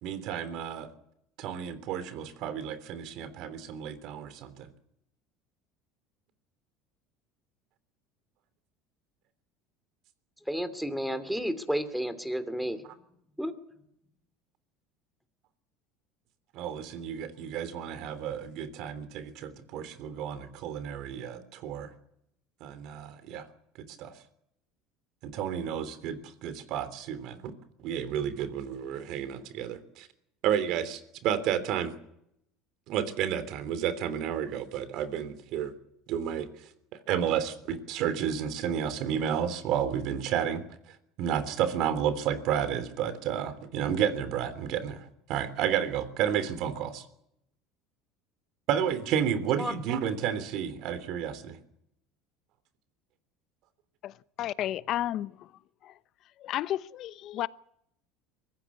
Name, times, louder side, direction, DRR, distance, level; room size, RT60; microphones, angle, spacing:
voice 1, 0.0-0.9 1.4-4.7 16.5-21.9 22.6-23.5 24.0-24.1 25.2-27.4 27.8-30.1 30.4-31.9 32.9-35.7 36.1-36.7 37.1-40.6 41.2-47.0 48.7-51.6, right 9 dB, 65° right, 3.2 m, -31 dB
voice 2, 10.5-12.8 13.4-13.5 49.6-49.7, equal, ahead, 2.8 m, -31 dB
voice 3, 54.0-55.5 55.8-55.9 56.4-57.5, left 13 dB, 55° left, 0.8 m, -32 dB
23.0 x 15.5 x 9.7 m
supercardioid pair, 95°, 0 cm